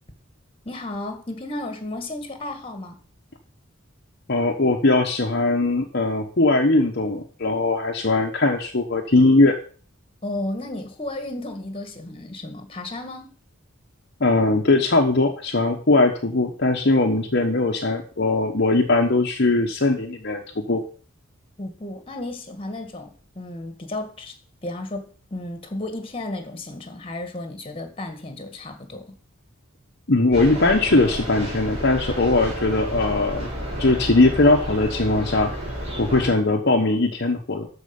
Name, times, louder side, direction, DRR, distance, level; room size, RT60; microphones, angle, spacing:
voice 1, 0.7-3.0 10.2-13.3 21.6-24.3 24.6-29.1, left 2 dB, 25° left, 1.9 m, -33 dB
voice 2, 4.3-9.6 14.2-20.4 20.7-20.8 30.1-33.5 33.8-35.5 36.0-37.7, left 2 dB, 50° left, 1.1 m, -20 dB
sound 1, 30.3-36.3, equal, 30° right, 4.9 m, -31 dB
13.0 x 4.9 x 7.0 m
head